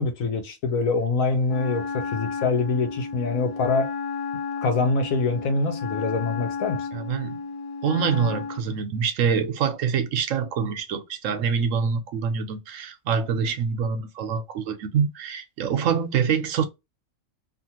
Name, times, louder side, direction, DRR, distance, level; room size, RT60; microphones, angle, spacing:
voice 1, 0.0-3.9 4.6-6.9, left 3 dB, 80° left, 1.2 m, -24 dB
Wind instrument woodwind instrument, 1.4-8.7, left 5 dB, 45° left, 0.8 m, -32 dB
voice 2, 6.9-7.4 7.8-16.6, right 6 dB, 70° right, 1.0 m, -25 dB
2.8 x 2.5 x 2.8 m
omnidirectional pair, 1.4 m